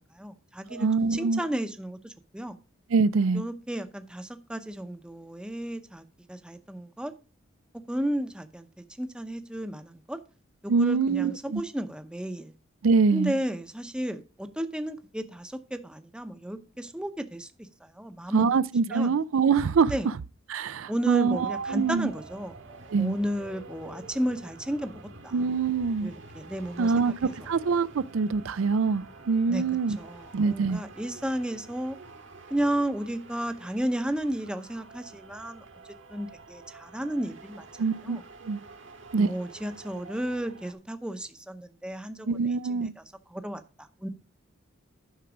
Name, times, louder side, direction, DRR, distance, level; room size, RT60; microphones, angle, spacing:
voice 1, 0.2-2.6 3.3-7.1 7.9-8.7 9.0-10.2 10.6-12.5 13.1-18.5 18.9-19.2 19.9-20.1 20.9-22.5 23.0-25.3 26.0-27.1 29.5-29.6 30.0-32.0 32.5-35.6 36.1-37.7 38.0-38.2 39.1-42.8 43.3-44.1, right 1 dB, 5° right, 0.7 m, -33 dB
voice 2, 0.7-1.4 2.9-3.4 10.7-11.6 12.8-13.3 18.3-19.9 20.5-22.1 22.9-23.2 25.3-26.1 26.8-30.0 30.3-30.8 37.8-38.6 39.1-39.3 42.3-42.9, right 5 dB, 90° right, 0.4 m, -24 dB
sound 1, 21.3-40.7, right 3 dB, 65° right, 1.7 m, -48 dB
10.5 x 6.0 x 4.9 m
head